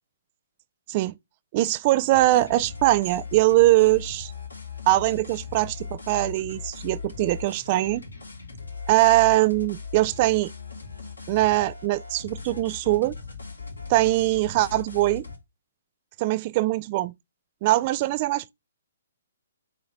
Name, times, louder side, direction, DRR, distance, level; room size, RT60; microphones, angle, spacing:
voice 1, 1.5-4.3 4.9-8.0 8.9-10.5 11.3-13.2 13.9-15.3 16.2-17.1 17.6-18.4, right 17 dB, 35° right, 0.4 m, -22 dB
sound 1, 2.1-15.4, left 5 dB, 80° left, 3.2 m, -39 dB
8.0 x 3.8 x 4.6 m
figure-of-eight pair, 125°, 0 cm